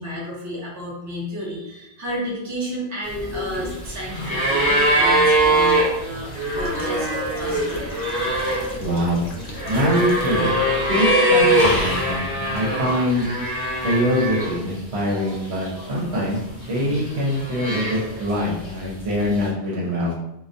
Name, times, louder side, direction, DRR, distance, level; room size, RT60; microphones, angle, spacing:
voice 1, 0.0-7.1 7.4-8.5 12.6-12.7, equal, 20° right, -5 dB, 0.5 m, -32 dB
sound 1, 3.0-14.7 15.0-15.9 16.7-18.4 19.4-19.5, right 1 dB, 25° left, 0.8 m, -22 dB
sound 2, 4.9-10.6 10.9-11.1 11.5-12.3 13.2-13.4, left 2 dB, 60° left, 0.7 m, -33 dB
voice 2, 8.8-9.2 9.7-13.3 13.8-16.4 16.7-20.1, equal, 75° right, -3 dB, 1.0 m, -23 dB
2.2 x 2.2 x 2.5 m, 0.83 s
omnidirectional pair, 1.1 m